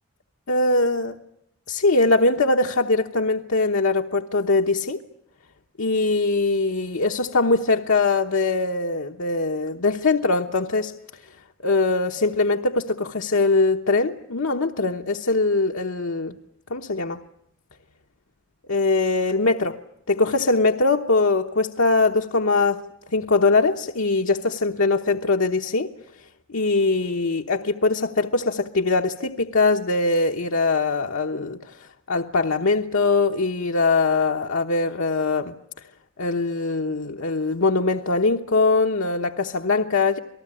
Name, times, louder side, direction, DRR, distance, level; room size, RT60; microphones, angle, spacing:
voice 1, 0.5-1.2 1.7-5.0 5.8-10.9 11.6-16.4 16.7-17.2 18.7-19.8 20.1-22.8 23.1-25.9 26.5-35.5 36.2-40.2, left 3 dB, 85° left, 3 dB, 1.1 m, -22 dB
28.5 x 19.0 x 9.8 m, 0.78 s
head